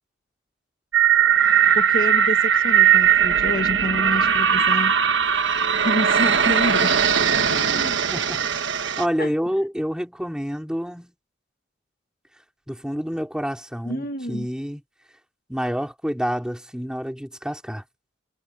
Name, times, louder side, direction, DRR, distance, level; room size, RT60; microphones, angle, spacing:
sound 1, 0.9-9.1, right 8 dB, 75° right, 1.3 m, -19 dB
voice 1, 1.7-4.9 5.8-7.0 7.5-8.0 9.2-9.3 13.8-14.5, left 1 dB, 55° left, 1.8 m, -28 dB
voice 2, 8.1-8.5 8.7-11.1 12.7-14.8 15.5-17.8, equal, 5° right, 4.5 m, -28 dB
head